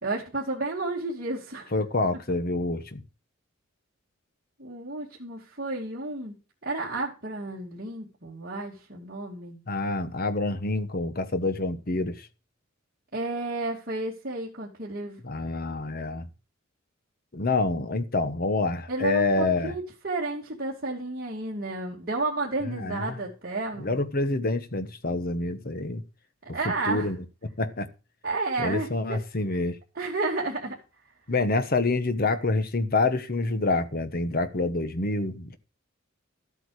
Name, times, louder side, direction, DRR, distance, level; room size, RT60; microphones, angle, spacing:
voice 1, 0.0-1.7 4.6-6.3 6.6-9.6 13.1-15.2 18.9-24.0 26.5-27.2 28.2-29.2 29.9-30.8, right 2 dB, 45° right, 2.5 m, -32 dB
voice 2, 1.7-3.0 9.7-12.3 15.2-16.3 17.3-19.7 22.7-23.2 23.8-26.0 26.6-27.2 27.6-27.9 28.6-29.8 31.3-35.6, left 2 dB, 50° left, 1.2 m, -27 dB
12.5 x 8.3 x 4.8 m
head